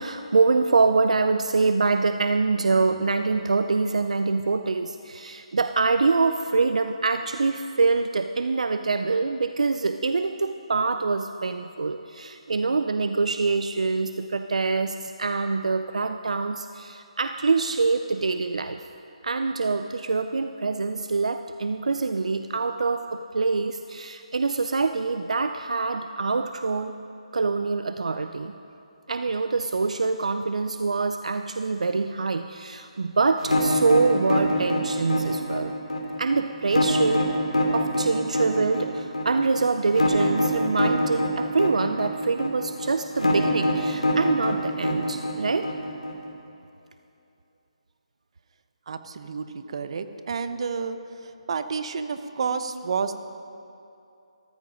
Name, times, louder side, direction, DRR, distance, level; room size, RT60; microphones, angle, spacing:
voice 1, 0.0-18.8 19.2-26.9 27.3-28.5 29.1-35.7 36.2-37.3 37.7-45.8, right 4 dB, 75° right, 9 dB, 0.5 m, -25 dB
sound 1, 33.4-46.3, left 1 dB, 90° left, 2.8 m, -25 dB
voice 2, 48.9-53.1, right 5 dB, 50° right, 10 dB, 0.9 m, -30 dB
14.5 x 14.0 x 5.1 m, 2.7 s
figure-of-eight pair, 150°, 4 cm